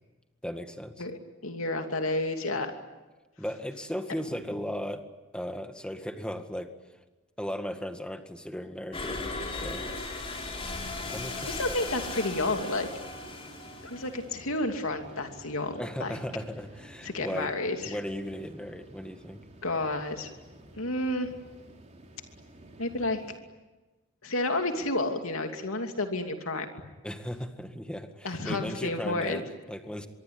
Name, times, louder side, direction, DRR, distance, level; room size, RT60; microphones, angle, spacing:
voice 1, 0.4-1.1 3.4-5.0 5.3-6.7 7.4-9.9 11.1-11.5 15.8-17.5 17.8-19.4 27.0-30.1, equal, 5° left, 7 dB, 1.9 m, -36 dB
voice 2, 1.0-2.7 11.4-12.9 13.8-16.2 17.0-18.0 19.6-20.3 20.8-21.3 22.8-23.2 24.2-26.7 28.2-29.4, left 2 dB, 80° left, 5 dB, 2.8 m, -31 dB
sound 1, 8.9-14.4, left 2 dB, 30° left, 4.5 m, -37 dB
sound 2, 10.9-23.4, right 1 dB, 35° right, 4.1 m, -52 dB
24.5 x 23.5 x 9.7 m, 1.2 s
head